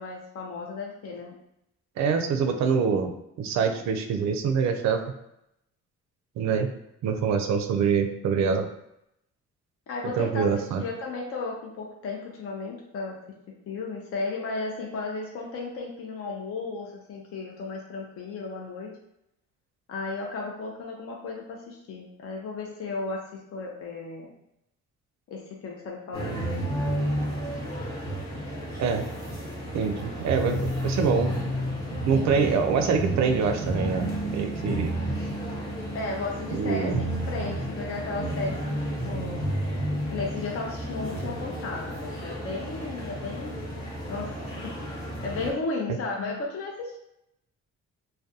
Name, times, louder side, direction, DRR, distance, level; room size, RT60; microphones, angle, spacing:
voice 1, 0.0-1.4 9.9-13.2 13.7-18.9 19.9-24.3 25.3-26.5 32.1-32.5 35.9-39.4 40.1-43.7 44.1-44.4 45.2-47.0, left 3 dB, 50° left, -1 dB, 0.5 m, -34 dB
voice 2, 2.0-3.1 3.4-5.0 6.4-6.7 7.0-8.6 10.2-10.8 28.8-29.1 29.7-31.3 32.1-34.9 36.5-37.0, right 6 dB, 65° right, 6 dB, 0.4 m, -25 dB
sound 1, 26.1-45.5, right 1 dB, 15° left, 0.9 m, -31 dB
2.3 x 2.2 x 2.7 m, 0.81 s
cardioid pair, 90°, 30 cm